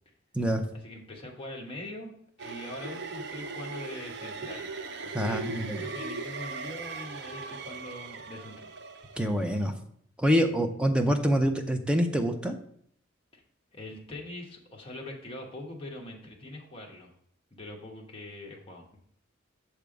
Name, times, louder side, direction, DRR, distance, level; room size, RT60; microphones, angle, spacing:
voice 1, 0.8-2.1 2.4-4.7 5.0-8.7 13.3-13.4 13.7-17.1 17.5-19.0, left 1 dB, 25° left, -1 dB, 1.1 m, -42 dB
sound 1, 2.4-9.7, right 4 dB, 55° right, 0.5 m, -39 dB
voice 2, 5.1-5.8 9.2-9.7 10.2-12.6, equal, 5° right, 4 dB, 0.5 m, -26 dB
6.8 x 3.5 x 5.1 m, 0.67 s
head